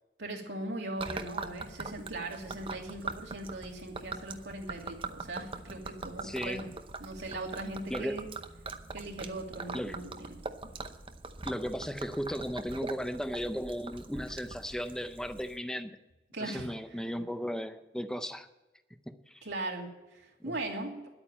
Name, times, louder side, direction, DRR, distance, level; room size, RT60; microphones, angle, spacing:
voice 1, 0.2-6.7 7.0-8.3 8.9-10.4 16.3-16.7 16.9-17.2 19.4-21.1, right 2 dB, 85° right, 0 dB, 2.7 m, -39 dB
Gurgling / Liquid, 1.0-15.6, right 3 dB, 30° right, 0.8 m, -42 dB
voice 2, 6.2-6.6 7.9-8.2 9.7-10.0 11.4-15.9 16.4-18.5 19.1-19.5 20.4-20.5, equal, 5° left, 9 dB, 0.6 m, -36 dB
11.0 x 8.8 x 8.6 m, 1.1 s
head